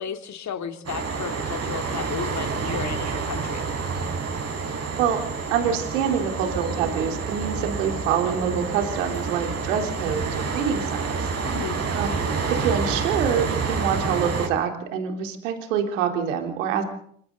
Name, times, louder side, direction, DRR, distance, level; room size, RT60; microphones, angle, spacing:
voice 1, 0.0-3.6 11.4-11.8, left 7 dB, 45° left, 7 dB, 3.0 m, -33 dB
sound 1, 0.9-14.5, right 5 dB, 40° right, 5.5 m, -28 dB
voice 2, 5.5-11.1 11.9-12.2 12.5-16.8, right 7 dB, 75° right, 4 dB, 3.8 m, -26 dB
27.0 x 25.0 x 4.0 m, 0.63 s
hypercardioid pair, 55°, 38 cm